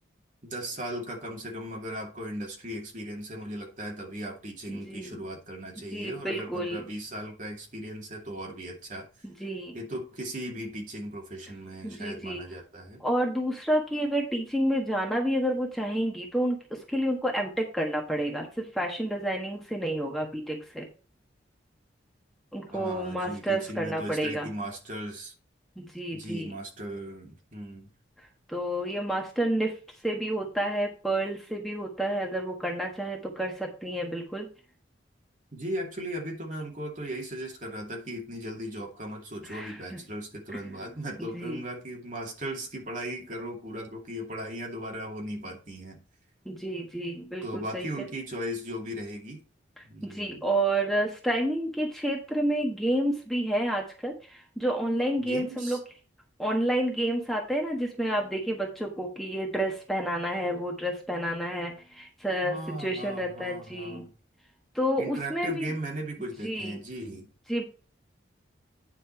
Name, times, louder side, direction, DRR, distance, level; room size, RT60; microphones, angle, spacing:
voice 1, 0.4-9.1 9.7-13.0 22.7-25.3 26.1-27.9 35.5-46.0 47.4-49.4 49.9-50.4 55.2-55.8 62.4-64.1 65.0-67.3, equal, 40° right, 2.4 m, -37 dB
voice 2, 4.7-5.1 5.9-6.8 9.2-9.8 11.8-12.4 13.0-20.8 22.5-24.5 25.8-26.5 28.5-29.7 30.0-34.5 39.4-40.0 40.5-40.8 41.3-41.6 46.4-48.1 49.8-55.8 56.4-64.1 64.7-65.7 66.4-66.8 67.5-67.6, right 1 dB, ahead, 1.3 m, -30 dB
9.6 x 5.3 x 4.5 m
head